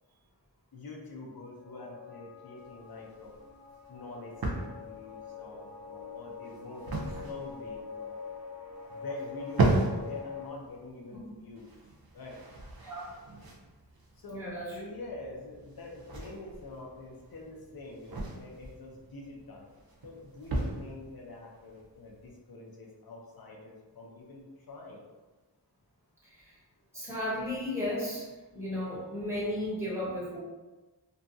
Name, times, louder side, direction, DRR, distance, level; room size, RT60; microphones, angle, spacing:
voice 1, 0.7-3.3 3.9-8.2 8.9-11.7 12.1-12.4 14.2-14.4 14.7-19.7 20.0-25.1, left 2 dB, 60° left, -2 dB, 0.6 m, -45 dB
sound 1, 1.6-10.5, left 6 dB, 35° left, 0.8 m, -45 dB
sound 2, 2.6-22.3, right 2 dB, 60° right, 0.5 m, -36 dB
voice 2, 12.8-13.1 14.3-14.8 26.2-26.6 26.9-30.4, left 1 dB, 5° right, -8 dB, 1.1 m, -35 dB
2.6 x 2.3 x 2.6 m, 1.2 s
wide cardioid pair, 40°, 42 cm